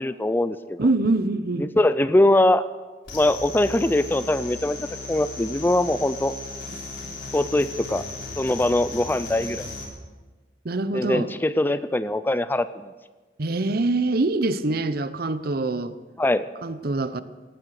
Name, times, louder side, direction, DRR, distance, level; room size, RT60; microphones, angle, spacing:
voice 1, 0.0-0.8 1.6-2.6 3.1-4.8 5.1-6.3 7.3-8.0 8.4-9.7 10.9-12.9 16.2-16.4, left 1 dB, 10° left, 14 dB, 0.4 m, -22 dB
voice 2, 0.8-1.7 10.6-11.3 13.4-16.0 16.6-17.2, right 2 dB, 55° right, 13 dB, 0.7 m, -24 dB
sound 1, 3.1-9.9, left 3 dB, 90° left, 3.8 m, -36 dB
18.0 x 9.7 x 6.5 m, 1.3 s
head